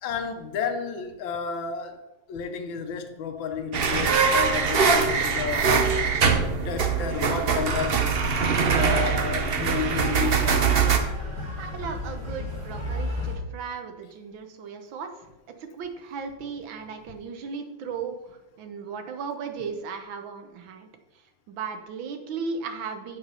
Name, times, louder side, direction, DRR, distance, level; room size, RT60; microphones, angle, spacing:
voice 1, 0.0-2.0 2.3-5.7 6.6-8.0 8.7-10.7, left 7 dB, 80° left, 5 dB, 1.6 m, -31 dB
charlotte silke&cassie, 3.7-11.0, right 5 dB, 65° right, 0.6 m, -22 dB
sound 1, 7.5-13.4, left 1 dB, 20° right, 2.3 m, -34 dB
voice 2, 11.6-15.1 15.7-18.2 18.6-20.9 21.5-23.2, right 5 dB, 90° right, 7 dB, 1.8 m, -36 dB
8.2 x 6.0 x 5.5 m, 1.0 s
omnidirectional pair, 2.1 m